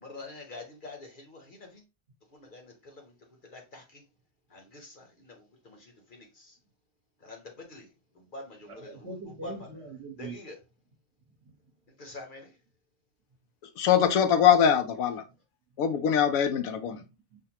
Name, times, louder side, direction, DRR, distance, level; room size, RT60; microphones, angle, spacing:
voice 1, 0.0-1.7 2.3-3.1 3.5-3.8 4.5-5.3 5.6-5.8 6.1-6.2 7.2-7.4 7.7-7.8 8.3-9.0 9.4-9.5 10.2-10.5 12.0-12.5, left 2 dB, 45° left, 0.9 m, -45 dB
voice 2, 8.6-10.4 17.0-17.4, right 2 dB, 55° right, 1.3 m, -42 dB
voice 3, 13.8-15.2 15.8-17.0, left 8 dB, 85° left, 1.1 m, -22 dB
5.6 x 2.2 x 2.8 m
omnidirectional pair, 1.4 m